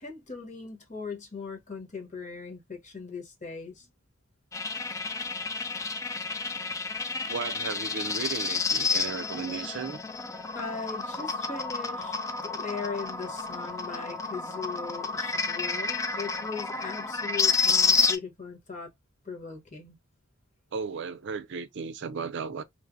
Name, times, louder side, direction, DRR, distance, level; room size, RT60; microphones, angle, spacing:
voice 1, 0.0-3.9 10.5-12.1 12.4-18.9 19.2-20.0, left 4 dB, 35° left, 1.2 m, -39 dB
sound 1, 4.5-18.2, left 4 dB, 15° left, 0.3 m, -30 dB
voice 2, 7.3-10.0 20.7-22.6, right 5 dB, 60° right, 0.5 m, -35 dB
3.2 x 2.1 x 2.5 m
head